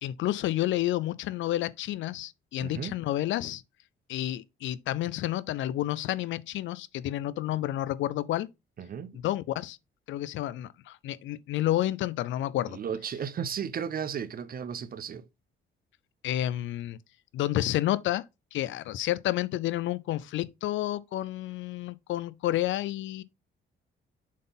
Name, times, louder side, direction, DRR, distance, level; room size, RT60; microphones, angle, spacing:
voice 1, 0.0-3.6 4.1-8.5 9.2-9.8 10.1-12.8 16.2-17.0 17.3-18.3 18.5-23.2, left 14 dB, 75° left, 0.5 m, -30 dB
voice 2, 2.6-3.0 8.8-9.1 12.7-15.2, right 7 dB, 45° right, 0.7 m, -34 dB
7.4 x 3.8 x 3.9 m
cardioid pair, 90°, 20 cm